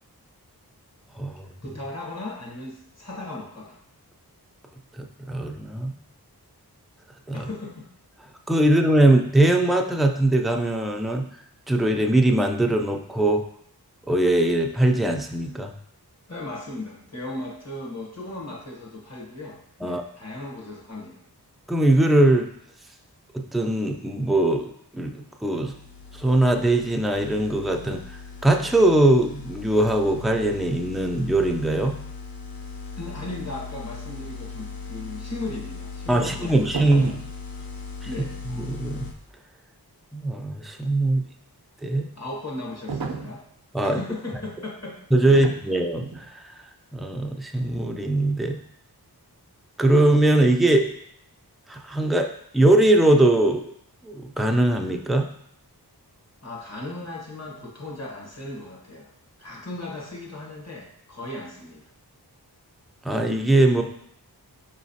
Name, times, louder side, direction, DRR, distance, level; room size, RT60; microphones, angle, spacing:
voice 1, 1.6-3.8 7.3-7.9 16.3-21.2 32.9-37.1 38.0-38.3 42.1-43.4 43.8-45.0 45.3-45.5 56.4-59.1 59.4-61.8, left 2 dB, 40° left, -2 dB, 1.2 m, -37 dB
voice 2, 5.0-5.9 7.3-7.5 8.5-11.3 11.7-13.4 14.1-15.7 19.8-20.0 21.7-22.5 23.3-25.7 26.2-28.0 28.4-31.9 36.1-37.1 38.6-39.1 40.1-41.2 41.8-42.1 43.7-44.0 45.1-46.3 46.9-48.6 49.8-50.9 51.7-52.3 52.5-53.7 54.0-55.3 63.0-63.8, right 1 dB, ahead, 3 dB, 0.3 m, -21 dB
sound 1, 25.7-39.1, left 4 dB, 65° left, 0.6 m, -39 dB
sound 2, 36.7-37.3 42.9-43.4 45.3-45.7 46.0-46.3, right 5 dB, 65° right, 0.5 m, -32 dB
4.8 x 3.0 x 2.7 m, 0.70 s
wide cardioid pair, 55°, 39 cm